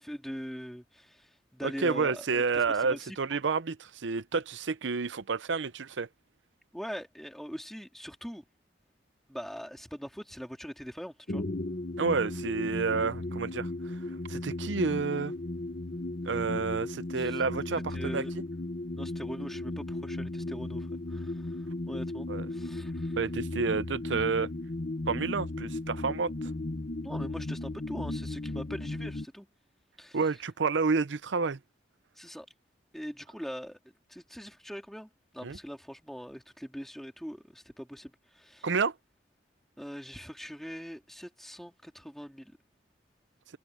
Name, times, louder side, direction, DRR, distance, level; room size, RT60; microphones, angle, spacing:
voice 1, 0.0-3.2 6.7-8.4 9.3-11.4 17.2-17.4 17.9-18.3 18.9-23.2 27.0-29.5 30.0-30.2 32.2-32.5 32.9-33.8 34.1-38.7 39.8-42.5, equal, ahead, 3.5 m, -42 dB
voice 2, 1.6-6.1 12.0-15.3 16.2-18.2 22.3-22.5 23.2-24.5 25.1-26.3 30.1-31.6 35.4-35.6 38.6-38.9, right 4 dB, 85° right, 0.7 m, -30 dB
sound 1, 11.3-29.2, left 2 dB, 50° left, 0.9 m, -36 dB
head